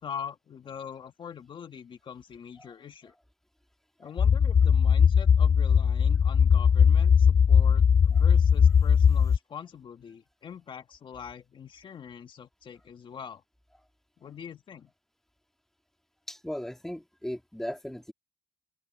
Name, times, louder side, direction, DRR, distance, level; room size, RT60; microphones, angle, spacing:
voice 1, 0.0-3.1 4.0-13.4 14.2-14.9, left 7 dB, 55° left, 1.7 m, -43 dB
sound 1, 4.2-9.4, left 7 dB, 35° left, 0.4 m, -20 dB
voice 2, 16.3-18.1, equal, 5° left, 2.6 m, -37 dB
cardioid pair, 100°, 10 cm